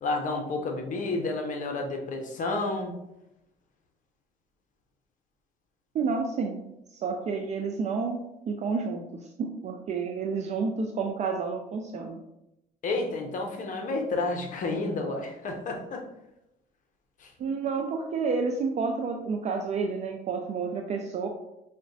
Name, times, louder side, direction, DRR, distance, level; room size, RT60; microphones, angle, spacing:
voice 1, 0.0-3.0 12.8-16.0 17.2-17.3, left 3 dB, 50° left, 3 dB, 0.6 m, -30 dB
voice 2, 5.9-6.6 6.9-12.2 17.4-21.3, right 4 dB, 45° right, 3 dB, 0.4 m, -30 dB
5.7 x 2.1 x 2.6 m, 0.88 s
cardioid pair, 110°, 17 cm